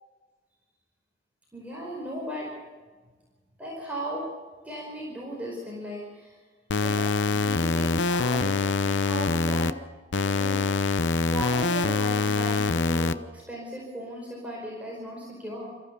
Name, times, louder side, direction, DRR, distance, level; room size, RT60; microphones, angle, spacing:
voice 1, 1.5-2.5 3.6-4.3 4.6-6.4 6.8-9.7 10.2-10.6 11.0-15.7, equal, 10° right, -4 dB, 5.0 m, -36 dB
sound 1, 6.7-9.7 10.1-13.1, left 3 dB, 75° left, 0.7 m, -25 dB
27.5 x 14.5 x 6.9 m, 1.3 s
head